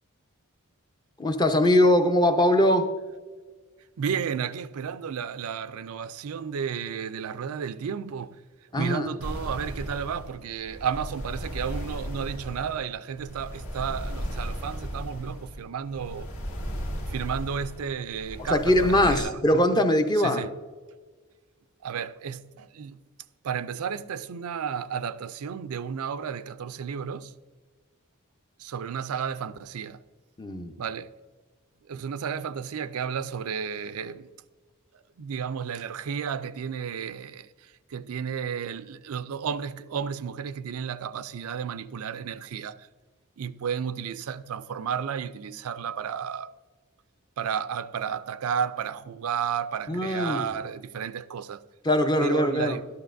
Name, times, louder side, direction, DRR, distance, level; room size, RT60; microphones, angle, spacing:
voice 1, 1.2-2.9 8.7-9.1 18.4-20.4 30.4-30.7 49.9-50.5 51.8-52.8, left 1 dB, 20° left, 0.6 m, -22 dB
voice 2, 4.0-8.4 8.7-16.3 17.1-19.4 20.2-20.5 21.8-23.0 23.4-27.3 28.6-30.0 30.8-31.1 31.9-34.3 34.9-37.5 37.9-42.9 43.4-46.5 47.4-51.6 52.2-52.9, right 7 dB, 80° right, 0.4 m, -32 dB
sound 1, 9.2-19.2, equal, 70° left, 2.2 m, -36 dB
13.0 x 11.5 x 2.6 m
head